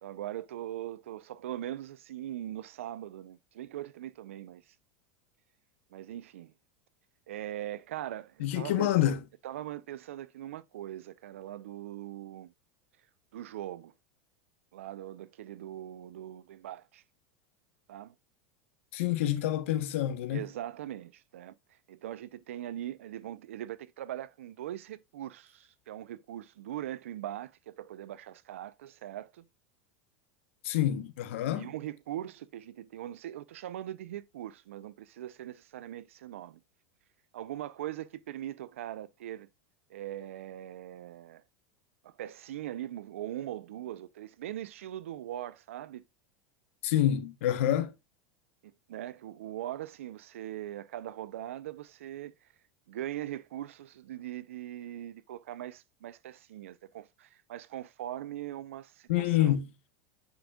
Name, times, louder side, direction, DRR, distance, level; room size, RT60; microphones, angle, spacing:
voice 1, 0.0-4.6 5.9-6.5 7.3-9.0 9.4-12.5 13.3-13.9 14.7-17.0 17.9-18.1 20.3-21.5 21.9-29.4 31.5-36.6 37.3-39.5 39.9-41.4 42.0-46.0 48.6-52.3 52.9-59.6, right 12 dB, 85° right, 0.6 m, -41 dB
voice 2, 8.4-9.2 18.9-20.4 30.6-31.7 46.8-47.9 59.1-59.7, left 12 dB, 75° left, 1.1 m, -27 dB
8.8 x 5.3 x 2.4 m
supercardioid pair, 115°, 7 cm